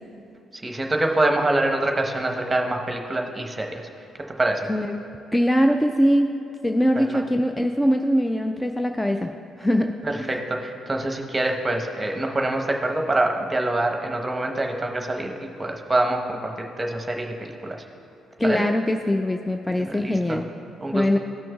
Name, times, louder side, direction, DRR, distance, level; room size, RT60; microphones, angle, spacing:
voice 1, 0.6-3.8 4.4-4.7 7.0-7.2 10.0-17.8 18.4-18.7 19.8-20.4 20.8-21.0, right 2 dB, 25° right, 2 dB, 1.0 m, -25 dB
voice 2, 5.3-6.4 6.6-9.3 9.6-10.3 18.4-20.4 20.9-21.2, equal, 10° left, 5 dB, 0.4 m, -22 dB
18.0 x 6.1 x 2.3 m, 2.8 s
figure-of-eight pair, 45°, 0 cm